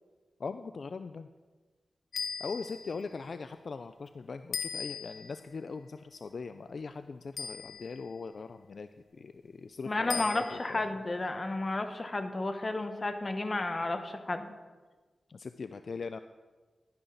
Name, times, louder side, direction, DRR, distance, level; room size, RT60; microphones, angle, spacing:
voice 1, 0.4-1.3 2.4-8.9 9.2-10.9 15.3-16.2, left 4 dB, 65° left, 10 dB, 0.3 m, -40 dB
sound 1, 2.1-3.0 4.5-5.4 7.4-8.1 10.1-10.8, left 5 dB, 90° left, 0.7 m, -38 dB
voice 2, 9.9-14.5, left 2 dB, 35° left, 7 dB, 1.0 m, -32 dB
11.5 x 9.7 x 3.9 m, 1.3 s
cardioid pair, 70°, 0 cm